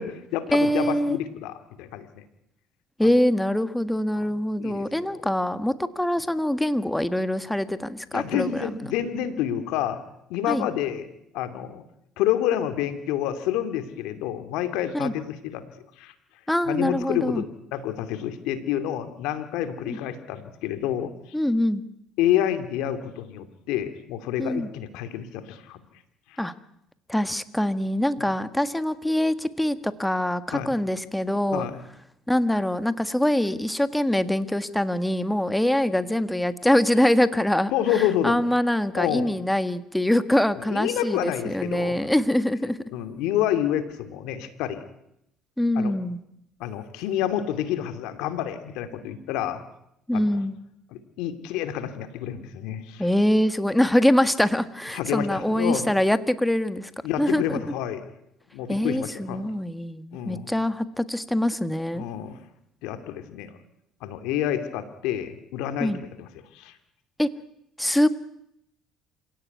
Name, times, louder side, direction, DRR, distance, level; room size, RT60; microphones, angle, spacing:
voice 1, 0.0-2.2 4.1-4.3 4.6-5.2 8.1-10.0 10.3-11.8 12.2-15.7 16.0-16.1 16.7-17.5 17.7-21.1 22.2-25.8 26.3-26.4 28.2-28.3 30.5-30.7 31.5-31.8 37.7-38.3 39.0-39.3 40.7-42.0 42.9-44.8 45.8-45.9 46.6-49.6 50.1-50.2 50.9-53.0 54.9-55.9 57.0-58.0 58.5-59.4 60.1-60.5 61.9-62.4 62.8-63.6 64.0-66.3 66.5-66.7, left 11 dB, 80° left, 9 dB, 2.7 m, -28 dB
voice 2, 0.5-1.2 3.0-8.8 10.5-10.7 14.9-15.1 16.5-17.4 19.8-20.0 21.3-21.8 24.4-24.7 26.4-26.5 27.1-31.7 32.3-42.8 45.6-46.2 50.1-50.6 53.0-56.9 57.2-57.6 58.7-62.0 65.8-66.0 67.2-67.3 67.8-68.1, left 1 dB, 5° left, 12 dB, 1.6 m, -24 dB
27.0 x 17.0 x 9.5 m, 0.79 s
supercardioid pair, 90°, 0 cm